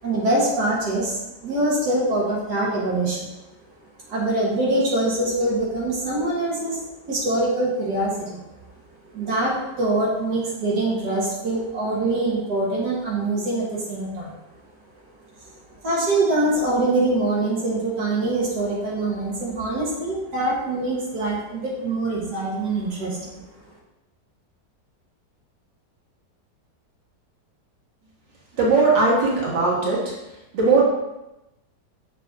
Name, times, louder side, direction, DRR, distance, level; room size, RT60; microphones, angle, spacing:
voice 1, 0.0-3.3 4.1-8.4 9.1-14.3 15.8-23.4, right 2 dB, 70° right, -5 dB, 2.1 m, -24 dB
voice 2, 28.5-30.1 30.5-30.8, right 3 dB, 90° right, -4 dB, 2.3 m, -19 dB
7.0 x 4.3 x 4.6 m, 0.95 s
omnidirectional pair, 1.9 m